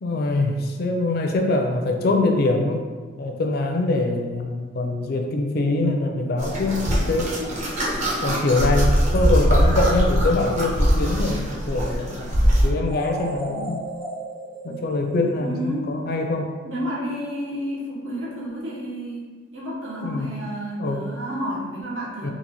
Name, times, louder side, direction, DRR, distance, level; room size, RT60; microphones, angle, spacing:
voice 1, 0.0-2.8 3.2-7.3 8.2-13.8 14.6-16.6 20.0-20.3 20.8-21.0 22.2-22.3, left 2 dB, 55° left, 3 dB, 0.4 m, -24 dB
sound 1, 6.4-12.7, equal, 40° right, 0.7 m, -21 dB
sound 2, 12.8-16.0, right 2 dB, 55° right, 1.2 m, -35 dB
voice 2, 15.4-15.9 16.6-22.3, equal, 85° right, -5 dB, 1.0 m, -31 dB
4.0 x 2.5 x 2.9 m, 1.5 s
head